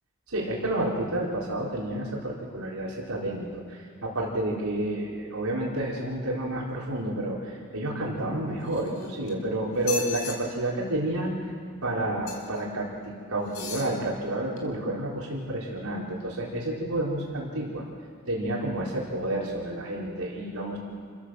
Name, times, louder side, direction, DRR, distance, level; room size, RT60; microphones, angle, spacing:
voice 1, 0.3-11.3 11.8-17.8 18.3-20.8, right 1 dB, 90° right, -4 dB, 3.9 m, -30 dB
sound 1, 8.6-9.3 9.8-10.4 12.2-12.6 13.4-13.9 14.6-14.7, left 4 dB, 80° left, 4.2 m, -36 dB
28.5 x 14.5 x 7.6 m, 2.4 s
head